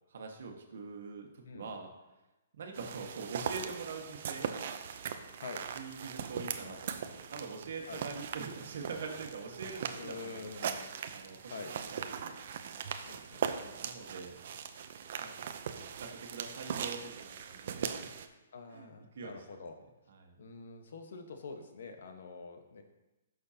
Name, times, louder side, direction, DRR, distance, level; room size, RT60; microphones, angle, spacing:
voice 1, 0.1-1.9 2.5-4.5 5.7-10.7 11.1-12.3 13.6-14.3 15.2-15.5 15.8-18.1 18.7-18.9 19.1-19.6 20.1-20.4, right 4 dB, 65° right, 2 dB, 1.6 m, -44 dB
sound 1, 2.7-18.3, right 7 dB, 50° right, 0.6 m, -40 dB
voice 2, 6.3-6.8 7.9-8.0 9.9-10.9 11.4-11.7 13.0-13.5 18.5-19.7 20.4-22.8, left 4 dB, 65° left, 5 dB, 1.2 m, -46 dB
14.5 x 6.4 x 2.9 m, 1.0 s
hypercardioid pair, 165°, 0 cm